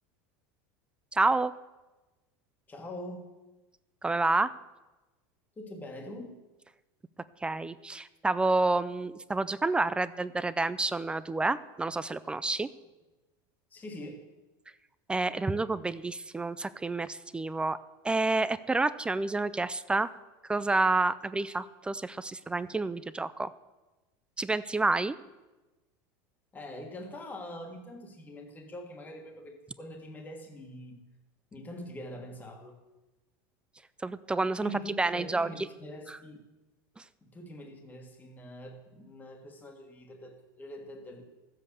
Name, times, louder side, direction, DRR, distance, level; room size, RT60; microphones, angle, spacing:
voice 1, 1.1-1.5 4.0-4.5 7.4-12.7 15.1-17.8 18.0-20.1 20.5-23.5 24.4-25.2 34.0-34.7 35.0-35.5 36.1-36.2 37.0-37.1, right 3 dB, 10° right, 14 dB, 0.3 m, -29 dB
voice 2, 2.7-3.3 5.6-6.3 13.7-14.2 26.5-31.0 31.5-32.8 34.4-36.5 37.2-41.2, left 1 dB, 15° left, 3 dB, 1.5 m, -44 dB
14.0 x 7.6 x 8.2 m, 1.1 s
supercardioid pair, 145°, 11 cm